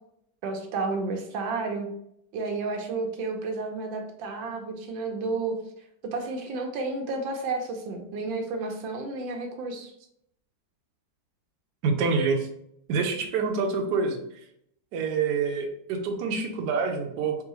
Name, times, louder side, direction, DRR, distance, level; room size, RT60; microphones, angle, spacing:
voice 1, 0.4-1.9 2.3-5.6 6.0-9.9, right 3 dB, 85° right, 3 dB, 1.5 m, -31 dB
voice 2, 11.8-12.5 12.9-14.2 14.9-17.4, right 4 dB, 70° right, 2 dB, 1.2 m, -26 dB
3.9 x 3.6 x 3.0 m, 0.74 s
omnidirectional pair, 2.0 m